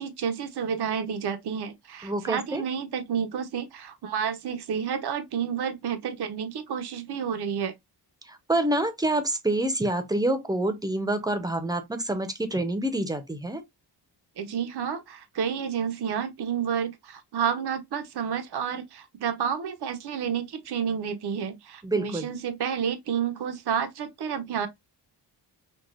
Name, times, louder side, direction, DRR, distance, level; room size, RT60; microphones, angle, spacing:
voice 1, 0.0-7.7 14.4-24.7, right 7 dB, 65° right, 0.9 m, -30 dB
voice 2, 2.0-2.6 8.3-13.6 21.8-22.3, right 1 dB, 10° right, 0.7 m, -27 dB
6.1 x 2.3 x 2.4 m
wide cardioid pair, 125°, 42 cm